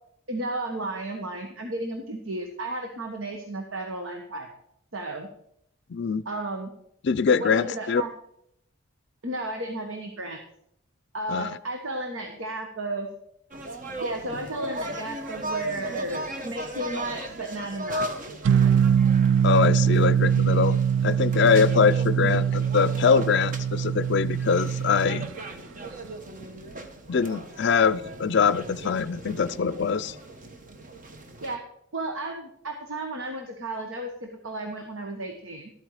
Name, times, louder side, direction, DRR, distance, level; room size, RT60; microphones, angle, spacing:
voice 1, 0.3-4.5 4.9-5.3 6.2-6.7 7.4-8.1 9.2-10.4 11.1-13.1 14.0-18.1 22.2-22.4 31.4-31.6 31.9-35.7, right 1 dB, 80° right, 4 dB, 1.4 m, -33 dB
voice 2, 5.9-6.2 7.0-8.0 11.3-11.5 19.4-20.8 21.0-25.2 27.1-30.1, left 6 dB, 55° left, 15 dB, 0.4 m, -23 dB
sound 1, 13.5-31.6, right 1 dB, 40° right, 1.1 m, -38 dB
sound 2, 18.4-25.3, right 8 dB, 65° right, 0.3 m, -23 dB
12.5 x 9.0 x 4.8 m, 0.74 s
head